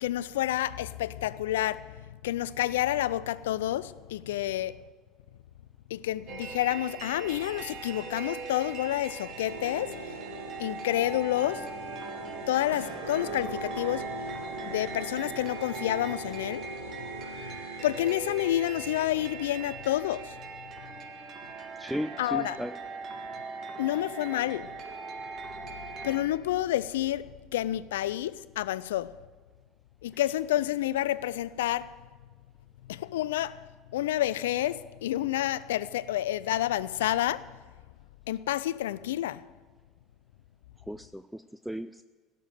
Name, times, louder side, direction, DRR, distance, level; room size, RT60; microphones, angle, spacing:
voice 1, 0.0-4.8 5.9-10.2 10.6-12.0 12.5-16.7 17.0-17.1 17.4-17.6 17.8-20.9 22.2-22.6 23.8-24.8 26.0-29.2 30.0-32.0 32.9-37.6 38.3-39.4, left 13 dB, 75° left, 0.4 m, -29 dB
sound 1, 6.3-26.2, right 4 dB, 45° right, 1.5 m, -41 dB
sound 2, 7.7-19.1, right 2 dB, 75° right, 3.3 m, -56 dB
sound 3, 9.5-18.1, right 2 dB, 90° right, 1.9 m, -41 dB
voice 2, 21.8-22.8 40.9-42.0, equal, ahead, 0.4 m, -35 dB
16.5 x 6.7 x 9.1 m
figure-of-eight pair, 65°, 0 cm